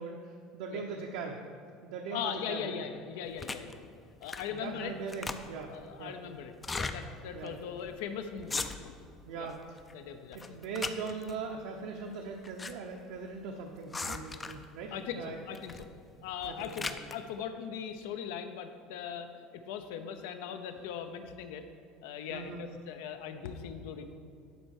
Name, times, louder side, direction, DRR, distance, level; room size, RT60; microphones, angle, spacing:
voice 1, 0.0-1.4 1.8-2.8 4.5-6.1 7.3-7.6 9.3-9.8 10.3-15.4 16.4-16.9 22.3-22.6, right 4 dB, 75° right, 1 dB, 0.8 m, -40 dB
voice 2, 2.1-3.8 4.2-4.9 5.7-8.9 9.3-9.5 9.9-10.6 14.9-15.9 16.2-21.6 22.0-24.1, left 8 dB, 85° left, 7 dB, 0.8 m, -40 dB
sound 1, 3.4-3.7 4.2-4.6 4.9-5.7 6.5-7.0 7.5-7.6 7.8-8.0 8.4-9.0 9.5-9.9 10.3-11.3 12.1-12.7 13.0-13.1 13.9-14.7 15.5-15.9 16.3-17.2, left 3 dB, 15° left, 0.4 m, -38 dB
11.0 x 4.3 x 6.5 m, 2.5 s
cardioid pair, 165°, 0 cm